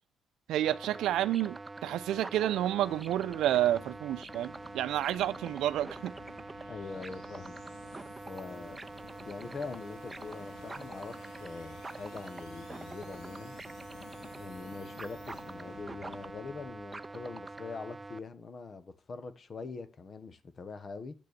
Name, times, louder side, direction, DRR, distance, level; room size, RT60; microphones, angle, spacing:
voice 1, 0.5-6.1, right 12 dB, 85° right, 0.6 m, -30 dB
sound 1, 0.6-18.2, right 3 dB, 20° right, 0.5 m, -45 dB
sound 2, 2.8-17.6, left 6 dB, 60° left, 1.9 m, -54 dB
sound 3, 3.5-16.1, left 5 dB, 90° left, 2.3 m, -61 dB
voice 2, 6.7-7.6 8.3-8.8 9.2-13.5 14.4-21.1, left 4 dB, 40° left, 1.3 m, -43 dB
8.4 x 6.8 x 6.8 m
cardioid pair, 90°, 0 cm